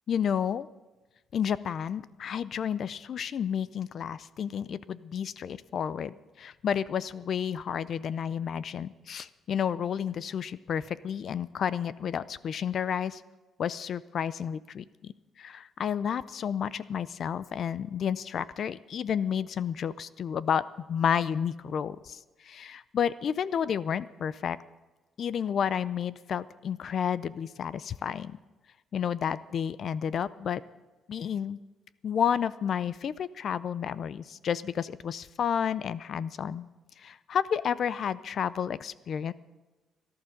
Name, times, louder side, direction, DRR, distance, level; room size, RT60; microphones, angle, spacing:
voice 1, 0.1-0.7 1.3-13.2 13.6-24.6 25.2-28.4 28.9-30.6 31.1-31.6 32.0-36.7 37.0-39.3, left 8 dB, 55° left, 17 dB, 0.5 m, -31 dB
17.5 x 11.5 x 6.5 m, 1.2 s
cardioid pair, 105°, 0 cm